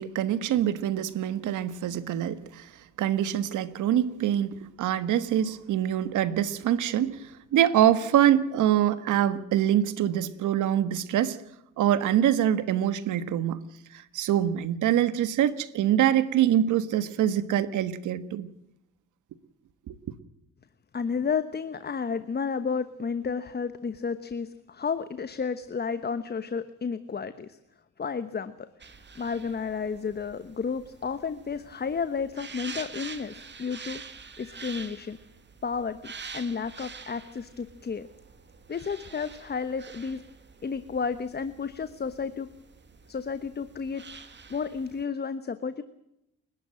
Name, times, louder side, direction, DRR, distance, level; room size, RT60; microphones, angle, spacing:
voice 1, 0.0-2.7 3.0-11.4 11.8-13.6 13.9-18.5 19.9-20.0, right 11 dB, 80° right, 1.5 m, -25 dB
voice 2, 20.9-27.6 28.0-28.7 29.2-34.0 34.4-35.2 35.6-36.0 36.3-38.1 38.7-40.2 40.6-42.5 43.1-44.0 44.5-45.8, left 5 dB, 35° left, 1.1 m, -32 dB
sound 1, 28.8-45.0, right 5 dB, 35° right, 2.4 m, -46 dB
29.5 x 12.5 x 7.7 m
cardioid pair, 90°, 30 cm